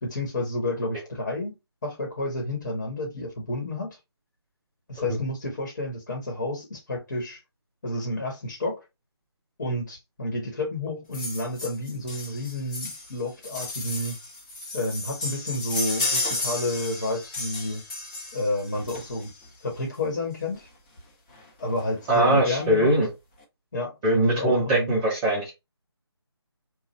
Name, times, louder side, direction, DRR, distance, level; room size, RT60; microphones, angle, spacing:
voice 1, 0.0-1.5 1.8-4.0 4.9-7.4 7.8-8.8 9.6-14.1 14.7-17.8 18.3-19.3 19.6-20.7 21.6-22.9 23.7-24.9, left 2 dB, 40° left, 1.2 m, -30 dB
sound 1, 11.1-19.5 20.5-20.6 21.0-21.1 21.3-21.4 21.8-22.4 22.9-23.0, left 2 dB, 20° left, 0.9 m, -33 dB
voice 2, 22.1-23.1 24.0-25.5, right 1 dB, 10° right, 0.6 m, -21 dB
3.0 x 2.3 x 4.2 m
figure-of-eight pair, 155°, 14 cm